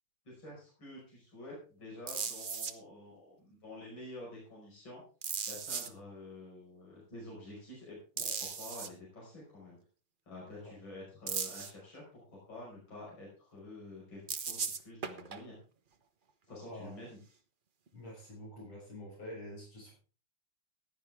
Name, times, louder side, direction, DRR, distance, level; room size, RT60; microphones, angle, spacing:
voice 1, 0.2-5.0 5.5-9.8 10.3-15.6 16.5-17.2, left 1 dB, 65° left, -4 dB, 6.1 m, -49 dB
sound 1, 2.1-2.7 5.2-5.9 8.2-8.9 11.3-11.7 14.3-15.4 17.9-18.0, right 6 dB, 60° right, 0.5 m, -37 dB
voice 2, 17.9-19.9, left 1 dB, 85° left, -4 dB, 7.6 m, -46 dB
15.5 x 10.0 x 3.5 m, 0.36 s
omnidirectional pair, 2.3 m